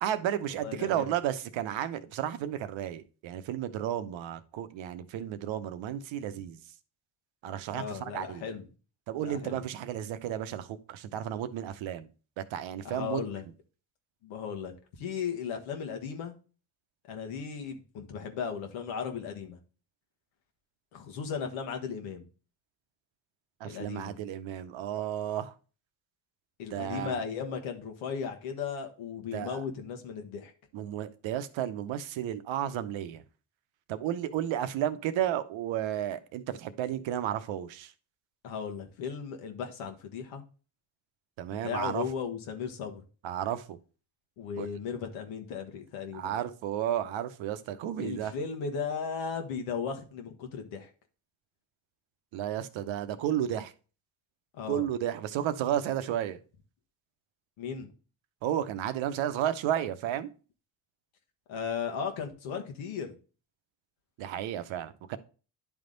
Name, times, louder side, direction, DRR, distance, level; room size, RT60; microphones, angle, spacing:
voice 1, 0.0-6.6 7.4-8.4 9.1-12.1 12.4-13.2 23.6-25.5 26.7-27.2 29.3-29.6 30.7-33.2 33.9-37.9 41.4-42.0 43.2-43.8 44.6-44.7 46.1-48.3 52.3-53.7 54.7-56.4 58.4-60.3 64.2-65.2, right 11 dB, 75° right, 0.8 m, -33 dB
voice 2, 0.6-1.1 7.7-8.6 9.2-9.6 12.8-13.4 14.2-16.3 17.0-19.6 20.9-22.3 23.6-24.2 26.6-30.5 38.4-40.4 41.5-43.0 44.4-46.3 48.0-50.9 54.5-54.9 57.6-57.9 61.5-63.1, left 6 dB, 90° left, 1.3 m, -36 dB
10.5 x 3.6 x 3.9 m
supercardioid pair, 60°, 46 cm